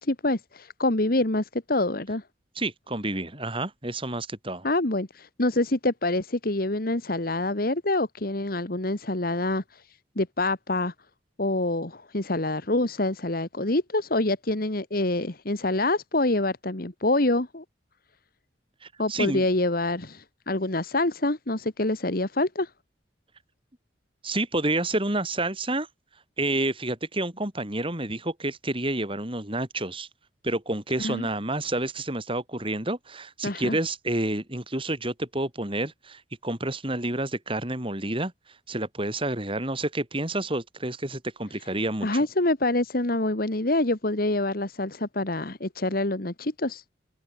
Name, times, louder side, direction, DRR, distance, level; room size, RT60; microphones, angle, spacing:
voice 1, 0.0-2.2 4.6-10.9 11.4-17.6 19.0-22.7 31.0-31.3 33.4-33.8 42.0-46.8, left 2 dB, 50° left, 1.8 m, -26 dB
voice 2, 2.5-4.7 18.8-19.4 24.2-25.9 26.4-30.1 30.4-38.3 38.7-42.2, right 2 dB, 30° right, 5.1 m, -29 dB
head